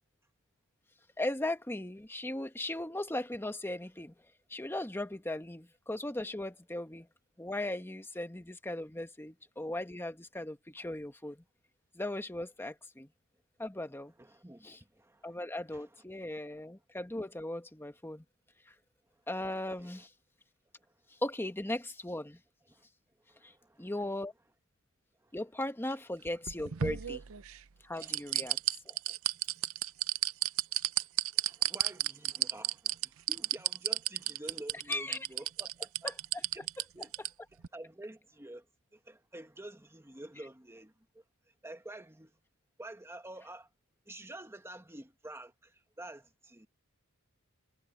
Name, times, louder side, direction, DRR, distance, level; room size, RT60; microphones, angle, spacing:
voice 1, 1.2-4.1 4.5-7.1 7.4-11.4 11.9-13.1 13.6-14.1 14.6-14.8 15.2-18.2 18.7-18.8 19.3-20.1 21.2-22.4 23.4-23.5 23.8-24.3 25.3-27.2 27.8-28.6 28.8-29.0 34.9-35.3 36.0-36.4, left 1 dB, 10° left, 1.2 m, -38 dB
voice 2, 14.2-14.7 14.9-15.4 15.7-15.8 19.8-20.1 20.8-20.9 22.7-22.9 23.3-23.9 25.2-25.3 28.0-28.1 31.5-36.1 36.5-36.6 36.9-37.1 37.7-38.7 38.9-41.2 41.6-42.3 42.8-43.7 44.1-46.7, right 1 dB, 10° right, 1.5 m, -49 dB
sound 1, 26.3-27.6 28.0-37.3 37.6-37.7, right 13 dB, 70° right, 0.6 m, -31 dB
head